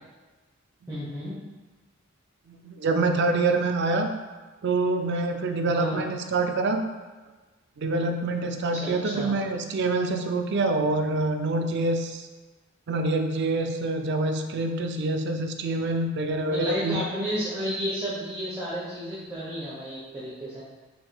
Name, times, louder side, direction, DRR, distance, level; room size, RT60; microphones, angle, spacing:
voice 1, 0.9-1.4 5.6-6.0 8.7-9.4 16.5-20.6, equal, 15° right, -10 dB, 0.9 m, -32 dB
voice 2, 2.6-4.1 4.6-6.8 7.8-12.2 12.9-17.0, right 2 dB, 55° right, 5 dB, 0.4 m, -26 dB
5.7 x 3.7 x 2.3 m, 1.3 s
head